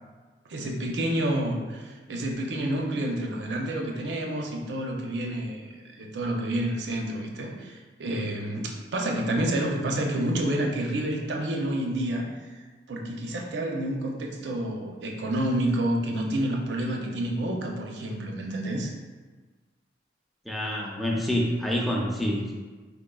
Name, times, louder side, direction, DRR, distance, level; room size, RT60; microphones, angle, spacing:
voice 1, 0.5-12.3 12.9-18.9, right 1 dB, 75° right, 1 dB, 0.5 m, -29 dB
voice 2, 20.5-22.5, equal, ahead, -2 dB, 0.3 m, -27 dB
3.6 x 3.4 x 2.2 m, 1.4 s
head